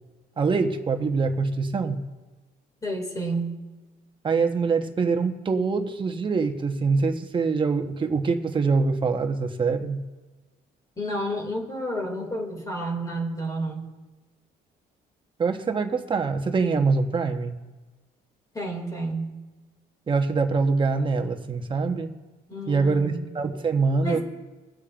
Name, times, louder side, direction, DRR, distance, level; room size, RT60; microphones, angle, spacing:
voice 1, 0.4-2.0 4.2-10.0 15.4-17.5 20.1-22.1 22.7-24.2, right 4 dB, 30° right, 5 dB, 1.1 m, -24 dB
voice 2, 2.8-3.5 11.0-13.8 18.5-19.3 22.5-23.2 24.0-24.2, right 1 dB, 20° left, 1 dB, 2.4 m, -30 dB
24.5 x 8.4 x 2.5 m, 1.2 s
cardioid pair, 110°, 17 cm